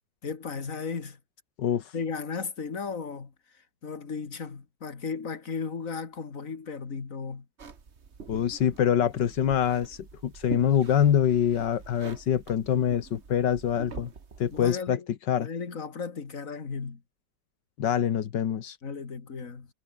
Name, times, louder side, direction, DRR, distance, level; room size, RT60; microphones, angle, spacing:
voice 1, 0.2-1.2 1.9-3.3 3.8-7.5 14.5-15.1 15.4-17.0 18.8-19.7, left 5 dB, 50° left, 2.7 m, -35 dB
sound 1, 7.6-14.8, right 5 dB, 40° right, 1.8 m, -45 dB
voice 2, 8.3-14.1 14.4-15.0 15.3-15.5 17.8-18.8, left 9 dB, 85° left, 1.9 m, -25 dB
omnidirectional pair, 1.8 m